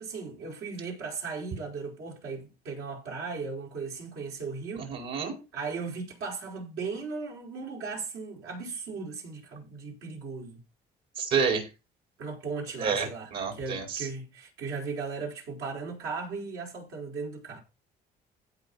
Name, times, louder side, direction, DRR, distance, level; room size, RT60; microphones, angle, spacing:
voice 1, 0.0-4.9 5.5-10.6 12.2-17.6, right 4 dB, 85° right, 4.7 m, -37 dB
voice 2, 4.7-5.3 11.2-11.7 12.8-14.0, right 6 dB, 70° right, 5.1 m, -29 dB
16.0 x 5.7 x 4.2 m
cardioid pair, 110°, 17 cm